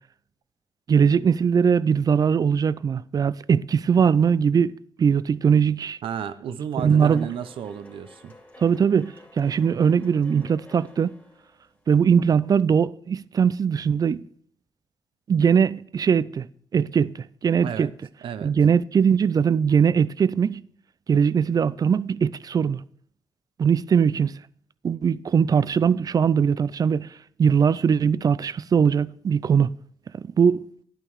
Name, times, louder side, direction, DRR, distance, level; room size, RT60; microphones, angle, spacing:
voice 1, 0.9-4.7 5.0-6.0 6.8-7.3 8.6-11.1 11.9-14.2 15.3-16.5 16.7-17.1 17.4-17.9 18.4-20.6 21.1-22.8 23.6-24.3 24.8-27.1 27.4-29.7 30.4-30.7, right 7 dB, 45° right, 0.4 m, -20 dB
voice 2, 6.0-8.3 17.6-17.9 18.2-18.5, right 8 dB, 80° right, 0.7 m, -33 dB
sound 1, 6.8-12.5, left 2 dB, 20° left, 2.3 m, -51 dB
11.0 x 9.1 x 4.7 m
cardioid pair, 90°, 9 cm